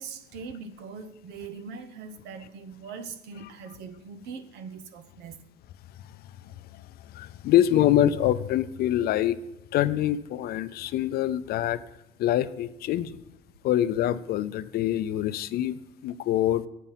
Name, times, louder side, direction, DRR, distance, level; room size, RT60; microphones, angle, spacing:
voice 1, 0.0-5.4, right 5 dB, 85° right, 0.8 m, -41 dB
voice 2, 7.1-9.4 9.7-11.8 12.2-13.2 13.6-16.6, left 12 dB, 65° left, 0.5 m, -25 dB
8.2 x 5.6 x 7.2 m
cardioid pair, 110°, 17 cm